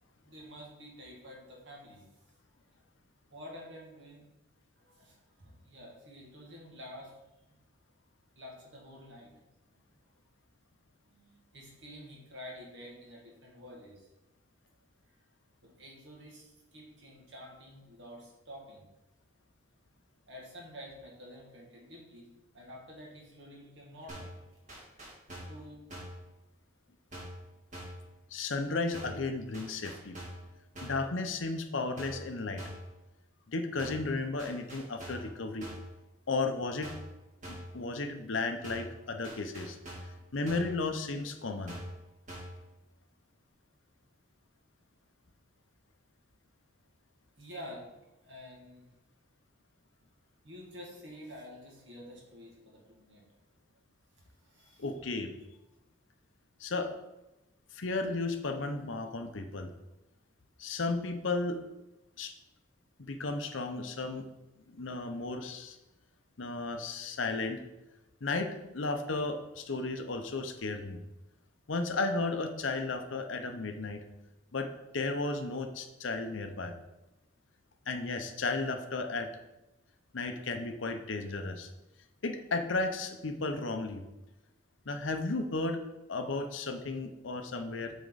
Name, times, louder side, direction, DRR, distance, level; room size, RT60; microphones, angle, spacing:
voice 1, 0.2-2.1 3.3-4.3 4.8-7.1 7.5-7.6 8.4-9.3 11.0-14.1 15.6-18.9 20.3-22.3 22.5-24.4 24.7-24.8 25.4-25.8 47.4-48.9 50.4-53.2 54.4-54.8, equal, 65° right, -2 dB, 2.1 m, -49 dB
sound 1, 24.1-24.4 24.7-25.6 25.9-26.2 27.1-27.4 27.7-28.0 28.9-29.3 29.5-30.5 30.7-31.1 32.0-32.3 32.6-32.9 33.8-34.1 34.4-35.3 35.6-35.9 36.8-37.1 37.4-37.8 38.6-39.0 39.2-40.2 40.5-40.8 41.7-42.0 42.3-42.6, equal, 40° right, 2.1 m, -44 dB
voice 2, 28.3-30.2 30.8-32.6 33.5-35.7 36.3-36.9 37.5-39.8 40.3-41.8 54.8-55.3 56.6-56.9 57.7-59.7 60.6-61.6 62.2-62.3 63.0-64.2 64.7-65.8 66.4-67.6 68.2-71.0 71.7-74.0 74.5-74.7 74.9-76.7 77.9-79.3 80.1-81.7 82.2-84.0 84.9-85.8 86.1-87.9, left 3 dB, 85° left, 6 dB, 0.8 m, -34 dB
8.1 x 4.4 x 4.0 m, 0.97 s
head